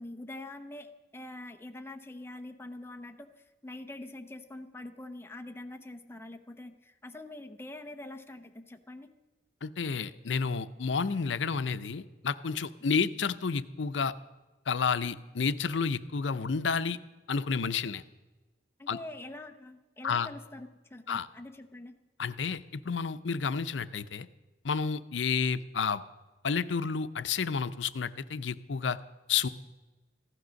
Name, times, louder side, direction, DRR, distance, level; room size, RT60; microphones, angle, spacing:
voice 1, 0.0-3.3 3.6-9.1 18.8-21.9, left 2 dB, 15° left, 5 dB, 0.8 m, -44 dB
voice 2, 9.6-14.1 14.7-17.0 17.3-18.0 18.9-19.0 20.0-20.3 21.1-21.3 22.2-24.3 24.6-26.0 26.4-29.0 29.3-29.5, left 5 dB, 85° left, 13 dB, 0.6 m, -30 dB
15.5 x 12.5 x 6.4 m, 1.2 s
head